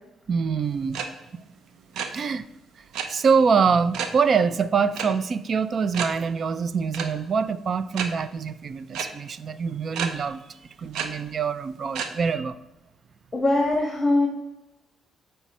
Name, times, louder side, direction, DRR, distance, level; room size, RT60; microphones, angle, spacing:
voice 1, 0.3-1.0 1.3-1.4 2.0-2.4 3.1-10.4 10.8-12.6, right 5 dB, 50° right, 14 dB, 0.5 m, -24 dB
sound 1, 0.9-1.1 1.3-1.5 1.8-2.1 2.9-3.1 3.9-4.2 4.9-5.1 5.4-5.5 5.9-6.1 6.9-7.1 7.9-8.1 8.9-9.0 9.9-10.1 10.9-11.1 11.9-12.1, right 7 dB, 80° right, 0.8 m, -29 dB
voice 2, 13.3-14.3, left 2 dB, 25° left, 0 dB, 1.5 m, -21 dB
8.2 x 4.5 x 4.3 m, 0.93 s
cardioid pair, 90°, 0 cm